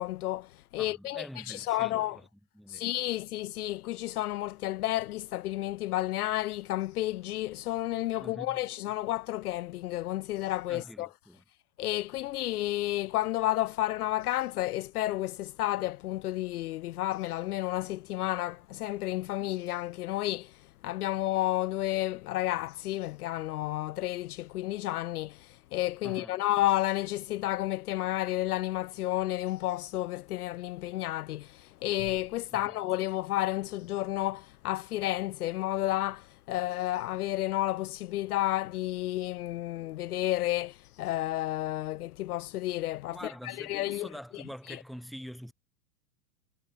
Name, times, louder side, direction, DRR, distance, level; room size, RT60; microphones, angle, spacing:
voice 1, 0.0-2.2 2.7-11.1 11.8-20.5 20.8-44.4 44.7-44.8, left 15 dB, 70° left, 0.6 m, -31 dB
voice 2, 0.8-2.2 2.5-2.9 8.2-8.6 10.7-11.4 26.0-26.3 32.5-32.8 43.1-45.5, equal, ahead, 4.3 m, -45 dB
hypercardioid pair, 105°, 47 cm